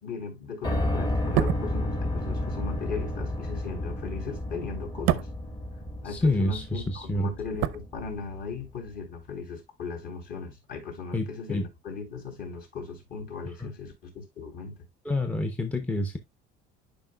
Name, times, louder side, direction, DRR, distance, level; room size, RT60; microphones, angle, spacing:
voice 1, 0.0-5.3 6.0-14.8, left 5 dB, 50° left, 3.5 m, -38 dB
Piano, 0.6-8.6, left 1 dB, 20° left, 1.4 m, -32 dB
sound 1, 1.2-6.5 6.7-8.6 8.8-9.0, right 13 dB, 90° right, 0.6 m, -32 dB
voice 2, 6.0-7.3 11.1-11.7 13.6-13.7 15.0-16.2, left 1 dB, 5° left, 0.7 m, -28 dB
11.5 x 5.2 x 2.2 m
cardioid pair, 160°, 20 cm